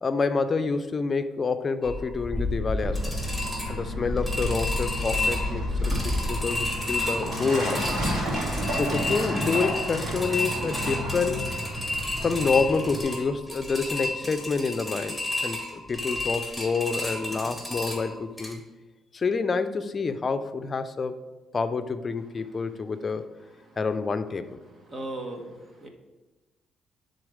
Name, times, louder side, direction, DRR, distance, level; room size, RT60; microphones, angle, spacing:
voice 1, 0.0-3.1 3.7-7.9 8.7-11.5 12.2-18.6 19.1-21.2 21.5-23.3 23.8-24.6, left 4 dB, 35° left, 10 dB, 0.5 m, -28 dB
sound 1, 1.8-18.5, left 2 dB, ahead, 2.1 m, -31 dB
Truck, 2.7-13.0, right 1 dB, 70° right, 2.6 m, -32 dB
voice 2, 24.9-25.9, right 2 dB, 40° right, 3 dB, 1.3 m, -36 dB
10.0 x 3.9 x 4.9 m, 1.2 s
cardioid pair, 90°, 0 cm